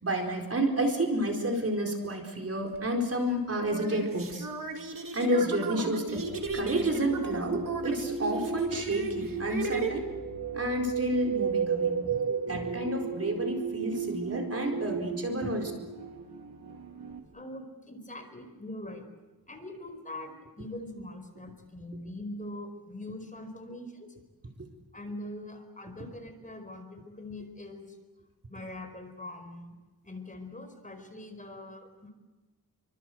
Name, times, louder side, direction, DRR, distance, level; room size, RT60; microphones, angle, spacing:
voice 1, 0.0-4.5 5.1-6.2 6.5-10.1 10.5-12.0 12.4-15.7 24.6-24.7, right 1 dB, 40° right, 1 dB, 4.4 m, -30 dB
sound 1, 2.7-2.9 3.5-9.9, right 4 dB, 60° right, 3.0 m, -36 dB
sound 2, 6.2-17.2, right 5 dB, 90° right, 3.6 m, -34 dB
voice 2, 17.3-19.1 19.5-24.1 24.9-28.0 28.5-29.8 30.0-32.1, left 1 dB, 20° left, 6 dB, 4.8 m, -42 dB
27.5 x 25.0 x 7.9 m, 1.1 s
wide cardioid pair, 110°, 37 cm